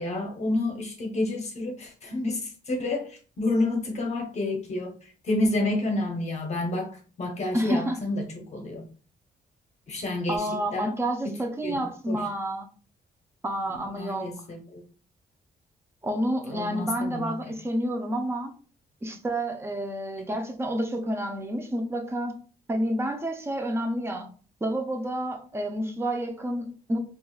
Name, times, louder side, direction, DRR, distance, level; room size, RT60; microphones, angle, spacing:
voice 1, 0.0-8.8 9.9-10.9 11.2-11.3 11.6-12.2 14.0-14.8 16.5-17.3, left 2 dB, 40° left, 0.7 m, -29 dB
voice 2, 7.5-8.0 10.3-12.7 13.4-14.3 16.0-18.5 19.0-22.4 22.7-24.3 24.6-27.0, right 1 dB, 15° right, 0.4 m, -29 dB
4.4 x 2.4 x 2.3 m
cardioid pair, 150°, 18 cm